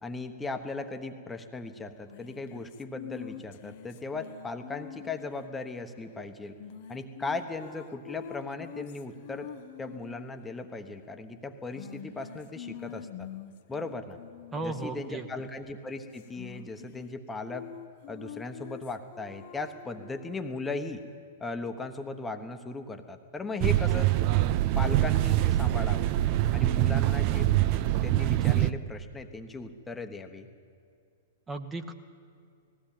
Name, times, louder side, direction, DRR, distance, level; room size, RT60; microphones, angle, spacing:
voice 1, 0.0-6.6 6.9-9.5 9.8-13.3 13.7-14.2 14.6-17.7 18.1-21.0 21.4-24.2 24.8-26.2 26.5-27.5 28.0-30.5, left 3 dB, 10° left, 6 dB, 1.1 m, -37 dB
sound 1, 2.1-5.4 6.6-10.4 11.7-14.8 16.1-17.2 17.5-20.4, left 10 dB, 50° left, 0.8 m, -45 dB
voice 2, 14.5-15.3 31.5-31.9, right 2 dB, 15° right, 6 dB, 1.1 m, -35 dB
sound 2, 23.6-28.7, right 14 dB, 45° right, 0.5 m, -24 dB
19.5 x 15.5 x 9.0 m, 2.4 s
figure-of-eight pair, 105°, 0 cm